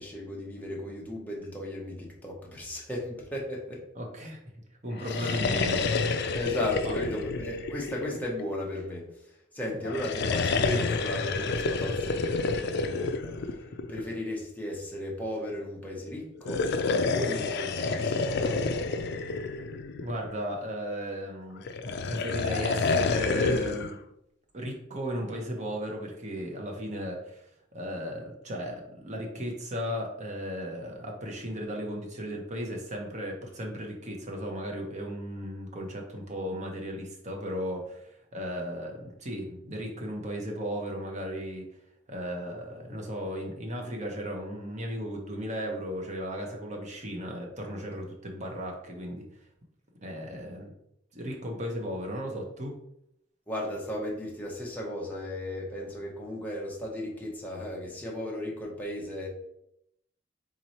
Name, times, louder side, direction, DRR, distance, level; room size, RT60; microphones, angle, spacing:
voice 1, 0.0-3.8 5.2-5.3 6.3-9.0 9.5-13.3 13.9-16.6 17.1-18.7 53.5-59.3, left 1 dB, 10° left, -3 dB, 1.0 m, -35 dB
voice 2, 3.9-4.4 4.8-6.4 6.8-7.2 9.7-9.9 20.0-24.0 24.5-27.4 27.7-41.7 42.1-49.2 50.0-50.7 51.1-52.8, equal, 35° right, 1 dB, 0.9 m, -36 dB
sound 1, 4.9-8.5 9.8-14.2 16.4-20.4 21.7-23.9, left 4 dB, 60° left, 0.4 m, -29 dB
3.7 x 3.1 x 4.2 m, 0.78 s
head